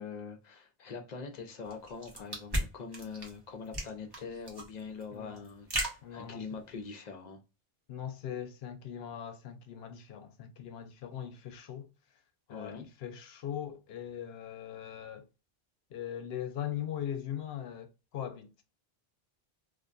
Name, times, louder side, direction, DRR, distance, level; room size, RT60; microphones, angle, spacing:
voice 1, 0.0-7.4 12.5-12.9, left 5 dB, 50° left, 0.6 m, -43 dB
sound 1, 1.7-6.9, right 1 dB, 25° right, 0.7 m, -37 dB
voice 2, 5.1-5.4 6.0-6.4 7.9-11.9 12.5-15.3 15.9-18.6, left 10 dB, 80° left, 0.8 m, -40 dB
2.5 x 2.2 x 2.4 m
omnidirectional pair, 1.0 m